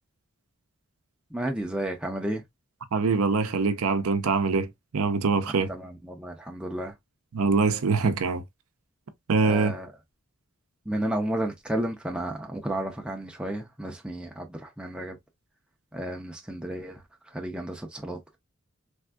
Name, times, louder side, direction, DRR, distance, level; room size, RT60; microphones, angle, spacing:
voice 1, 1.3-2.4 5.7-6.9 9.4-9.9 10.9-15.2 15.9-18.4, right 1 dB, 5° right, 0.4 m, -32 dB
voice 2, 2.9-5.7 7.3-8.4 9.3-9.7, right 4 dB, 75° right, 0.5 m, -24 dB
3.4 x 2.6 x 2.2 m
head